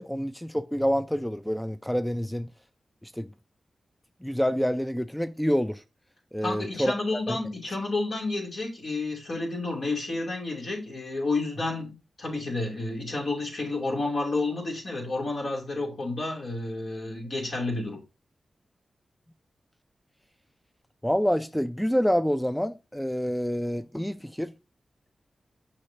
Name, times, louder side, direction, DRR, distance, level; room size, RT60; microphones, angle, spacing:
voice 1, 0.0-2.5 3.0-3.3 4.2-5.8 6.3-6.9 7.3-7.4 21.0-24.5, equal, 5° left, 0.3 m, -27 dB
voice 2, 6.4-18.0, left 2 dB, 65° left, 2.6 m, -30 dB
6.5 x 5.6 x 2.6 m
cardioid pair, 65°, 0 cm